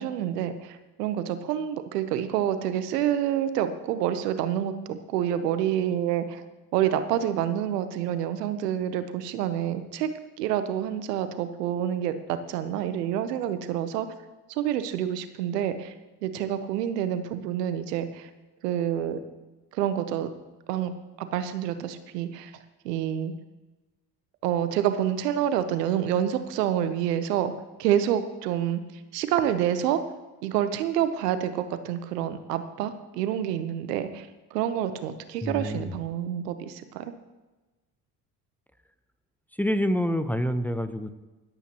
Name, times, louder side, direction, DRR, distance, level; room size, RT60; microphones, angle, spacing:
voice 1, 0.0-6.4 6.7-10.1 10.4-14.1 14.5-15.9 16.2-18.3 18.6-19.2 19.7-20.3 20.7-22.5 22.8-23.3 24.4-27.5 27.8-28.8 29.1-30.0 30.4-37.1, right 10 dB, 85° right, 11 dB, 0.8 m, -28 dB
voice 2, 35.4-35.9 39.6-41.1, equal, 5° left, 9 dB, 0.8 m, -27 dB
24.5 x 8.3 x 2.9 m, 1.2 s
hypercardioid pair, 65°, 46 cm